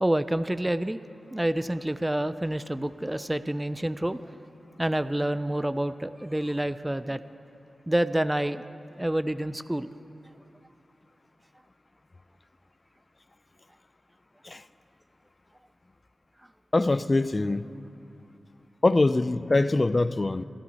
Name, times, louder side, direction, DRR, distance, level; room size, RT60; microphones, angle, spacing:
voice 1, 0.0-1.0 1.3-4.3 4.8-7.2 7.9-8.6 9.0-9.9, right 1 dB, 15° right, 0.5 m, -28 dB
voice 2, 16.7-17.7 18.8-20.4, left 2 dB, 40° left, 0.5 m, -23 dB
26.0 x 13.0 x 4.2 m
cardioid pair, 50°, 0 cm